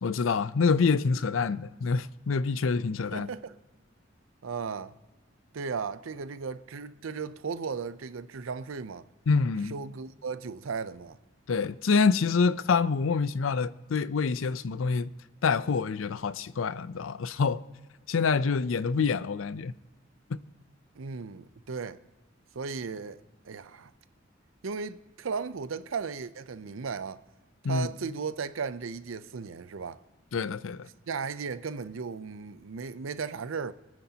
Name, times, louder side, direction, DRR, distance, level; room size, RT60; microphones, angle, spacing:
voice 1, 0.0-3.3 9.3-9.7 11.5-15.1 15.4-17.6 18.1-19.7 20.3-20.4 27.6-27.9 30.3-30.9, left 5 dB, 80° left, 0.5 m, -26 dB
voice 2, 3.1-3.6 4.4-4.9 5.5-9.1 9.7-11.2 21.0-22.0 22.5-23.9 24.6-27.2 27.7-30.0 31.1-33.7, right 5 dB, 85° right, 0.6 m, -36 dB
24.5 x 9.7 x 2.9 m
head